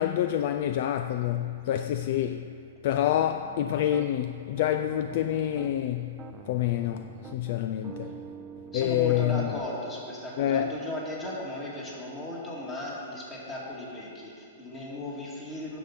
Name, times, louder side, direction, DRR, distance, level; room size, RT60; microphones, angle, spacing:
voice 1, 0.0-2.6 2.8-8.2 8.7-9.5 10.4-10.7, left 11 dB, 50° left, 0.3 m, -27 dB
Piano, 3.1-4.1 4.6-5.8 6.2-9.6, right 6 dB, 15° right, 0.5 m, -46 dB
voice 2, 8.7-15.8, left 1 dB, 15° left, 2.1 m, -36 dB
9.7 x 7.0 x 6.0 m
hypercardioid pair, 155°, 0 cm